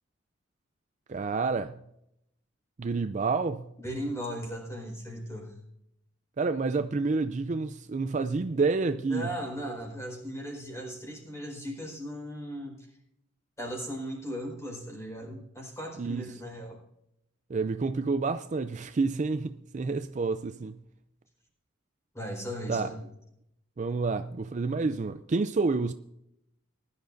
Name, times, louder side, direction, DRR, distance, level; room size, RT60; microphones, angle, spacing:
voice 1, 1.1-1.8 2.8-3.7 6.4-9.3 16.0-16.3 17.5-20.8 22.7-22.9 23.8-25.9, right 4 dB, 35° right, 0.4 m, -29 dB
voice 2, 3.8-5.5 9.1-12.9 13.6-16.8 22.1-23.0, equal, 15° left, 4.7 m, -37 dB
20.5 x 11.5 x 2.6 m
head